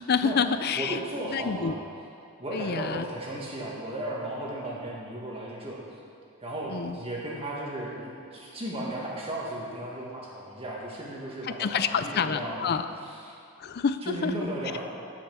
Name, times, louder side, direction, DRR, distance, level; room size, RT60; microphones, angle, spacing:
voice 1, 0.0-1.0 1.3-1.8 2.5-3.0 6.7-7.0 11.4-12.9 13.6-14.3, left 6 dB, 45° left, 11 dB, 0.4 m, -28 dB
voice 2, 0.8-1.8 2.4-5.8 6.4-12.7 14.0-14.8, right 1 dB, 25° right, -4 dB, 1.9 m, -35 dB
11.0 x 6.5 x 6.2 m, 2.4 s
head